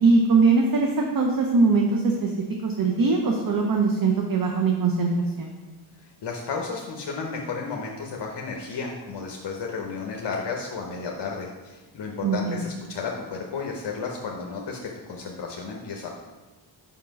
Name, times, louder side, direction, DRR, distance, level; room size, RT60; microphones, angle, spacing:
voice 1, 0.0-2.3 2.6-5.1 5.4-5.5 12.2-12.7, right 4 dB, 45° right, 1 dB, 0.8 m, -21 dB
voice 2, 6.2-14.8 15.1-16.1, left 4 dB, 60° left, 0 dB, 0.9 m, -33 dB
5.6 x 5.2 x 5.2 m, 1.2 s
wide cardioid pair, 110°, 48 cm